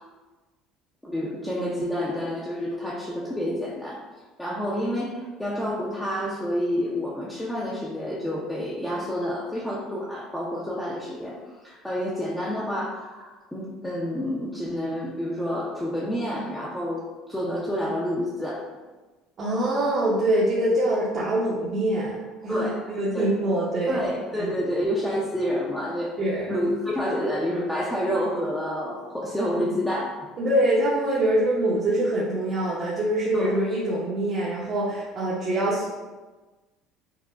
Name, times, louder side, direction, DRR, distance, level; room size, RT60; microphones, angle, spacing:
voice 1, 1.0-4.0 4.4-17.0 17.3-18.6 22.5-22.8 23.1-23.3 23.9-26.1 26.5-30.2 33.3-33.6, equal, 5° left, -6 dB, 0.5 m, -29 dB
voice 2, 19.4-22.1 22.4-24.0 24.4-24.5 26.2-26.5 30.4-35.9, right 1 dB, 35° right, -7 dB, 0.6 m, -24 dB
4.6 x 2.1 x 2.3 m, 1.2 s
cardioid pair, 125°, 0 cm